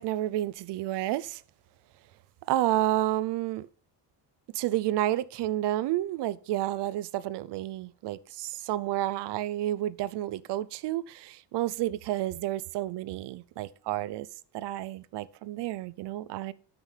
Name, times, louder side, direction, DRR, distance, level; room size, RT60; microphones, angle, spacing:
voice 1, 0.0-1.4 2.5-3.7 4.5-14.3 14.5-16.5, right 14 dB, 70° right, 0.6 m, -30 dB
12.5 x 6.1 x 3.3 m
cardioid pair, 160°, 42 cm